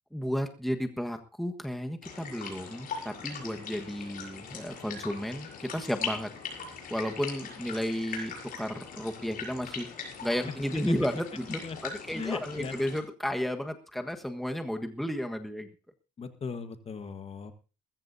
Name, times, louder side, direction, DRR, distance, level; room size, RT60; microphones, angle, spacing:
voice 1, 0.1-6.3 6.9-15.7, equal, ahead, 5 dB, 1.4 m, -33 dB
sound 1, 2.0-13.0, left 6 dB, 55° left, 6.5 m, -41 dB
voice 2, 12.2-12.7 16.2-17.5, left 5 dB, 35° left, 9 dB, 1.4 m, -37 dB
20.5 x 15.0 x 2.8 m, 0.33 s
cardioid pair, 110°, 17 cm